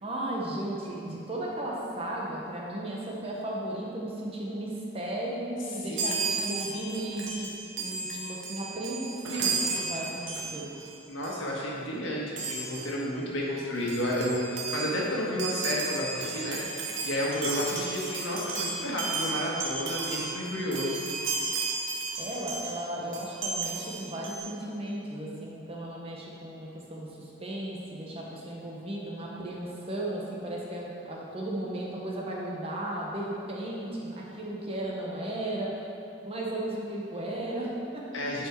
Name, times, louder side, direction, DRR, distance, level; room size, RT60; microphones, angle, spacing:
voice 1, 0.0-7.5 7.8-10.7 22.2-35.7 36.2-38.2, right 1 dB, 30° right, -3 dB, 1.1 m, -35 dB
voice 2, 5.8-6.5 11.1-16.6 17.0-21.0 38.1-38.5, equal, 80° left, -4 dB, 1.7 m, -31 dB
Chime, 6.0-10.9 11.2-11.5 12.4-13.0 13.5-13.6 13.8-22.8 23.1-24.4, right 4 dB, 80° right, 1.1 m, -34 dB
9.8 x 4.9 x 4.6 m, 2.6 s
head